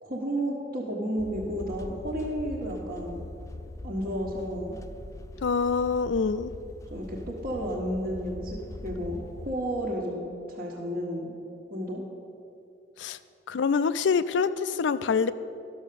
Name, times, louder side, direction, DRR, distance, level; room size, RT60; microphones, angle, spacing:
voice 1, 0.0-3.2 3.8-4.8 6.9-11.4 11.7-12.0, equal, 55° right, -6 dB, 1.2 m, -32 dB
sound 1, 1.2-9.5, left 2 dB, 15° left, 0.4 m, -42 dB
voice 2, 5.4-6.5 13.0-13.2 13.5-15.3, left 5 dB, 80° left, 13 dB, 0.4 m, -25 dB
12.0 x 6.6 x 6.8 m, 2.6 s
head